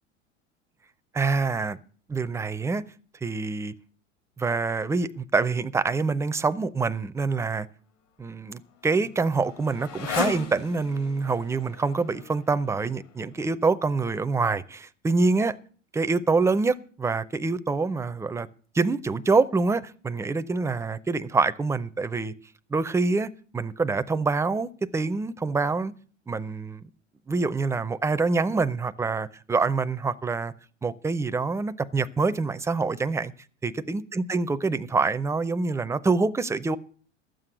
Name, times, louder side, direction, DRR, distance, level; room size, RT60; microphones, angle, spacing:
voice 1, 1.1-1.8 2.1-2.8 3.2-3.7 4.4-7.7 8.2-15.5 15.9-18.5 18.7-22.3 22.7-25.9 26.3-26.8 27.3-30.5 30.8-33.3 33.6-36.8, right 4 dB, 10° right, 0.5 m, -26 dB
Motorcycle, 8.0-13.4, left 7 dB, 75° left, 2.9 m, -38 dB
12.5 x 7.8 x 7.8 m
hypercardioid pair, 80°, 37 cm